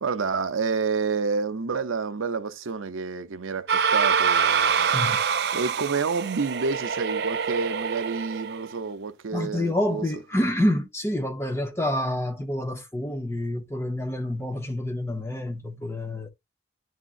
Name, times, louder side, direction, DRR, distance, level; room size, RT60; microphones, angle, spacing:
voice 1, 0.0-5.2 5.5-10.0, right 4 dB, 90° right, 0.7 m, -29 dB
sound 1, 3.7-8.7, right 6 dB, 55° right, 0.4 m, -25 dB
voice 2, 9.3-16.3, left 1 dB, 15° left, 0.8 m, -27 dB
11.0 x 3.7 x 2.5 m
head